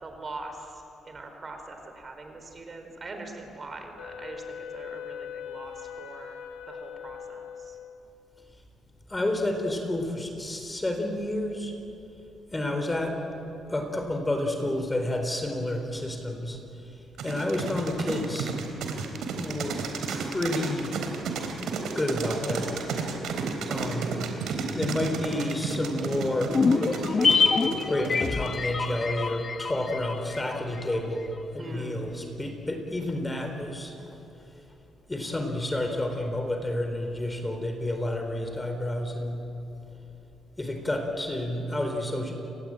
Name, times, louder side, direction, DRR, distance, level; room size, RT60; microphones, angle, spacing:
voice 1, 0.0-6.4 6.7-7.8 31.6-31.9, right 2 dB, 35° right, 5 dB, 4.9 m, -42 dB
Wind instrument woodwind instrument, 4.0-8.3, left 8 dB, 90° left, 1.9 m, -41 dB
voice 2, 9.1-11.7 12.5-13.2 13.7-16.6 17.2-18.5 19.3-20.9 22.0-22.7 23.7-24.1 24.7-26.5 27.9-31.3 31.5-33.9 35.1-39.5 40.6-42.3, left 1 dB, 15° left, 5 dB, 4.1 m, -30 dB
sound 1, 17.2-28.6, right 5 dB, 80° right, 3.9 m, -32 dB
sound 2, 26.5-31.0 31.2-31.3, left 4 dB, 40° left, 1.9 m, -26 dB
30.0 x 20.0 x 9.0 m, 2.8 s
cardioid pair, 90°, 0 cm